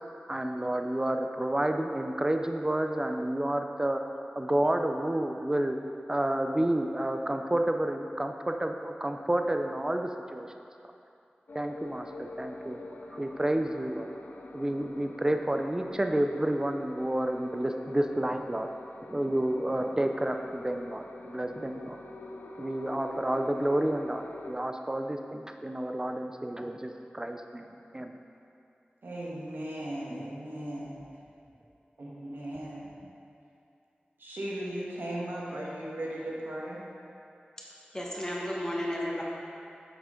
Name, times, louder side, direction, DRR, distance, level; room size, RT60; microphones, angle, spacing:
voice 1, 0.3-4.0 4.4-5.8 6.1-10.5 11.5-12.8 13.1-14.1 14.5-18.7 19.1-22.0 22.6-28.2 33.0-33.1, right 1 dB, 20° right, 5 dB, 0.5 m, -30 dB
sound 1, 11.5-24.5, left 2 dB, 80° left, 0.5 m, -45 dB
voice 2, 29.0-30.8 32.0-32.9 34.2-36.8, right 1 dB, 90° right, -5 dB, 1.4 m, -37 dB
voice 3, 37.9-39.2, equal, 15° left, -4 dB, 1.5 m, -33 dB
8.4 x 6.3 x 3.7 m, 2.6 s
wide cardioid pair, 55°, 3 cm